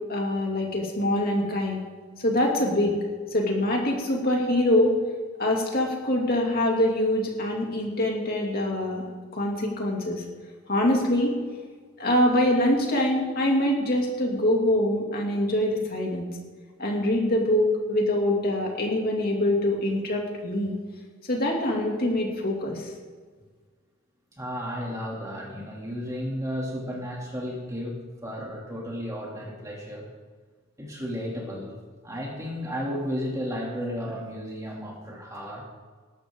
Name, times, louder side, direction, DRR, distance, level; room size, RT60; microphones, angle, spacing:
voice 1, 0.1-1.8 2.2-2.9 3.3-5.0 5.4-9.0 9.3-10.2 10.7-11.3 12.0-16.3 16.8-20.7 21.3-22.9, left 1 dB, 45° left, -1 dB, 2.8 m, -24 dB
voice 2, 24.3-30.1 30.8-31.7 32.0-35.6, equal, 15° right, -2 dB, 2.9 m, -33 dB
20.0 x 12.5 x 3.9 m, 1.5 s
head